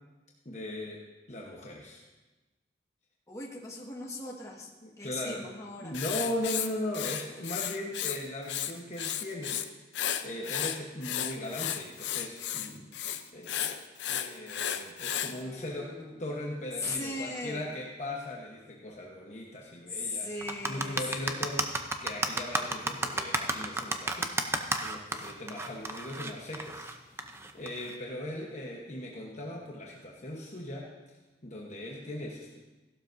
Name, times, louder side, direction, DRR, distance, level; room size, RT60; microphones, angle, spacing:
voice 1, 0.4-2.0 4.8-5.5 5.8-9.6 10.0-12.9 13.3-15.9 16.2-20.3 20.7-31.2 31.4-32.6, left 1 dB, 40° left, -1 dB, 1.1 m, -39 dB
voice 2, 3.3-4.7 5.0-5.9 7.3-7.4 15.1-16.2 16.8-17.6 19.9-21.5, left 2 dB, 20° left, -2 dB, 1.6 m, -39 dB
Writing, 5.9-8.2 8.4-9.6 9.9-15.3, left 10 dB, 70° left, 0.6 m, -33 dB
sound 1, 20.4-27.9, right 2 dB, 15° right, 0.6 m, -31 dB
16.0 x 12.0 x 2.7 m, 1.2 s
head